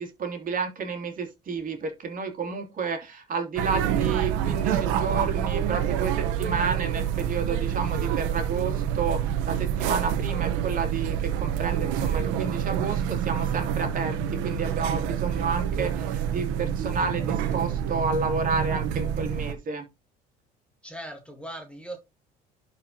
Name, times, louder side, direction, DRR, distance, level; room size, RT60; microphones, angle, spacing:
voice 1, 0.0-19.9, right 4 dB, 45° right, 3.0 m, -31 dB
sound 1, 3.6-19.5, right 9 dB, 85° right, 1.2 m, -27 dB
voice 2, 20.8-22.0, right 1 dB, 5° left, 1.8 m, -39 dB
11.5 x 4.7 x 3.0 m
cardioid pair, 100°, 19 cm